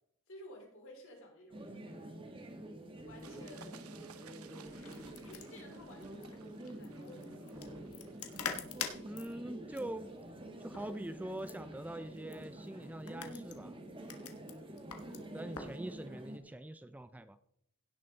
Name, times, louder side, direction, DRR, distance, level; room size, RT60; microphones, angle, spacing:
voice 1, 0.3-1.8 3.0-3.8 5.2-8.1 8.9-9.0 10.7-10.9, left 1 dB, 65° left, 0 dB, 3.9 m, -54 dB
sound 1, 1.5-16.4, right 1 dB, 25° right, 1.4 m, -48 dB
sound 2, 3.2-8.4, right 7 dB, 75° right, 0.9 m, -58 dB
sound 3, 4.7-15.8, left 7 dB, 85° left, 1.4 m, -47 dB
voice 2, 9.0-10.1 10.6-13.8 15.3-17.4, right 1 dB, 5° right, 11 dB, 0.3 m, -43 dB
17.0 x 6.5 x 4.0 m, 0.71 s
head